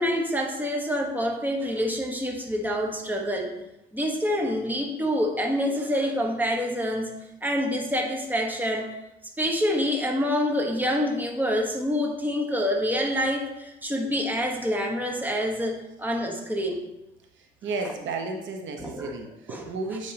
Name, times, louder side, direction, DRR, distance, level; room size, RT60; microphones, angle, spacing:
voice 1, 0.0-3.5 3.9-7.1 7.4-8.9 9.4-16.8 18.8-19.2 19.5-19.7, equal, 10° right, 0 dB, 1.2 m, -27 dB
voice 2, 17.4-20.1, right 3 dB, 70° right, 3 dB, 0.9 m, -33 dB
8.7 x 4.5 x 2.9 m, 0.90 s
cardioid pair, 90°, 20 cm